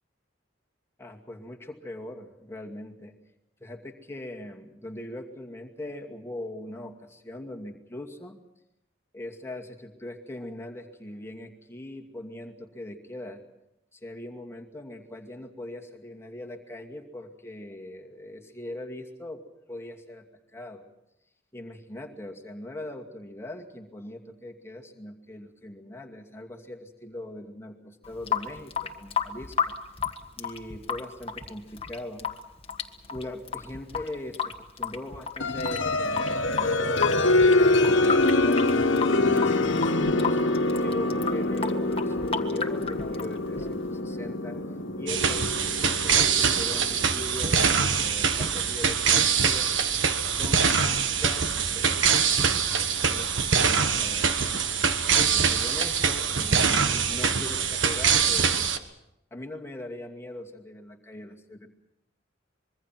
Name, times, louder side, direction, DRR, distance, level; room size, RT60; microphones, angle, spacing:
voice 1, 1.0-3.2 3.6-8.4 9.1-13.4 13.9-19.4 19.7-20.8 21.5-29.7 30.4-32.4 33.1-38.2 38.4-38.7 39.3-44.6 44.9-50.8 51.2-52.4 53.1-54.6 55.2-58.6 59.3-61.7, left 1 dB, 15° left, 1 dB, 2.4 m, -41 dB
Water tap faucet / Sink (filling or washing) / Drip, 28.0-44.0, left 6 dB, 30° left, 1.6 m, -33 dB
sound 1, 35.4-47.9, left 2 dB, 80° left, 1.5 m, -25 dB
sound 2, 45.1-58.8, right 6 dB, 80° right, 1.5 m, -24 dB
25.0 x 23.0 x 6.0 m, 0.85 s
head